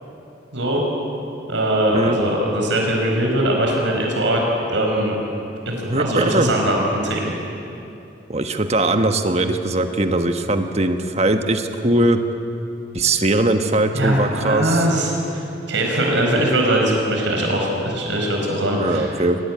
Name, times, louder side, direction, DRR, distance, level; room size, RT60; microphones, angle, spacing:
voice 1, 1.5-4.4 4.7-5.2 5.6-7.3 13.9-19.1, right 1 dB, 85° right, 0 dB, 5.0 m, -21 dB
voice 2, 5.8-6.5 8.3-12.2 12.9-14.8 18.8-19.4, right 2 dB, 35° right, 6 dB, 1.4 m, -20 dB
23.0 x 18.5 x 9.6 m, 2.8 s
head